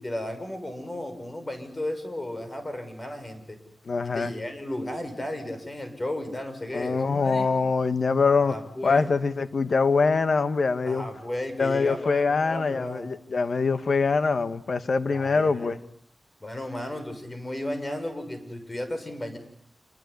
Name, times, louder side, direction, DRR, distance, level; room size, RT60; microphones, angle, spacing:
voice 1, 0.0-3.6 4.0-7.5 8.4-9.1 10.8-13.1 15.1-15.7 16.4-19.4, left 1 dB, 30° left, 6.4 m, -34 dB
voice 2, 3.9-4.3 6.7-8.6 8.8-11.1 11.6-15.8, left 4 dB, 65° left, 1.7 m, -24 dB
28.0 x 21.5 x 9.8 m
cardioid pair, 70°, 0 cm